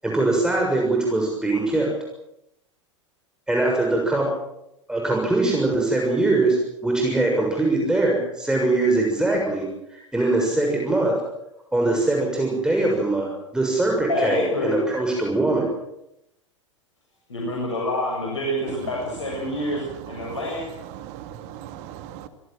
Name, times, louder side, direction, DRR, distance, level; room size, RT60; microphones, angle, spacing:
voice 1, 0.0-1.9 3.5-4.3 4.9-9.7 10.1-11.2 11.7-15.7, right 2 dB, 5° right, -1 dB, 6.8 m, -22 dB
voice 2, 14.1-14.8 17.3-20.7, left 1 dB, 70° left, -2 dB, 7.5 m, -27 dB
voice 3, 18.7-22.3, right 11 dB, 40° right, 10 dB, 2.2 m, -39 dB
27.5 x 18.0 x 7.6 m, 0.83 s
figure-of-eight pair, 90°, 16 cm